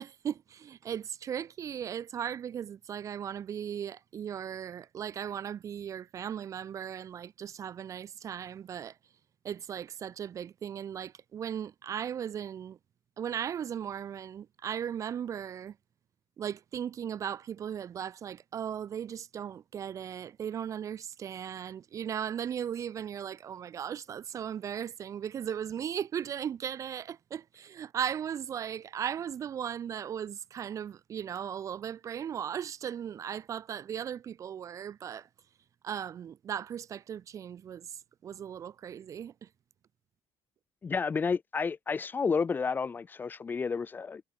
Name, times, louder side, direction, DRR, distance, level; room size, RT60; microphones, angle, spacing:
voice 1, 0.0-9.0 9.4-12.8 13.2-15.8 16.4-35.3 35.8-39.5, right 9 dB, 35° right, 1.7 m, -37 dB
voice 2, 40.8-44.2, left 5 dB, 20° left, 2.7 m, -31 dB
cardioid pair, 170°, 9 cm